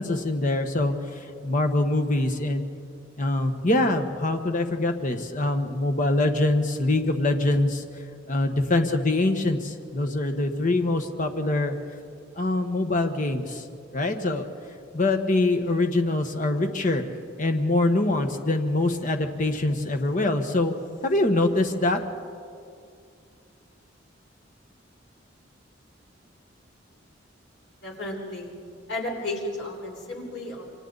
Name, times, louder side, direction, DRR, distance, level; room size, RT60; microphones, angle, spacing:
voice 1, 0.0-2.6 3.2-7.8 8.3-11.7 12.4-13.6 13.9-14.5 14.9-17.0 17.4-20.7 21.0-22.0, left 2 dB, 45° left, 5 dB, 1.3 m, -24 dB
voice 2, 27.8-28.6 28.9-30.6, left 1 dB, 70° left, -1 dB, 4.5 m, -33 dB
28.0 x 24.0 x 4.0 m, 2.4 s
head